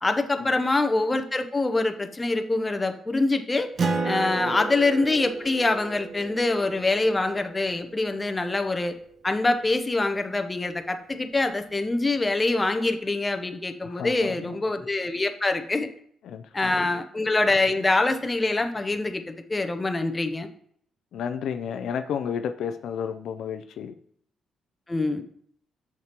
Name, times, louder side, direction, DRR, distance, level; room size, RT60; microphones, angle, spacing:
voice 1, 0.0-3.7 4.0-8.9 9.2-15.9 16.5-20.5 24.9-25.2, left 2 dB, 20° left, 7 dB, 0.7 m, -25 dB
Acoustic guitar, 3.8-8.7, right 4 dB, 45° right, 0.8 m, -33 dB
voice 2, 13.9-14.6 16.2-16.9 21.1-23.9, left 7 dB, 70° left, 8 dB, 0.4 m, -32 dB
7.2 x 5.9 x 2.9 m, 0.63 s
cardioid pair, 90°, 0 cm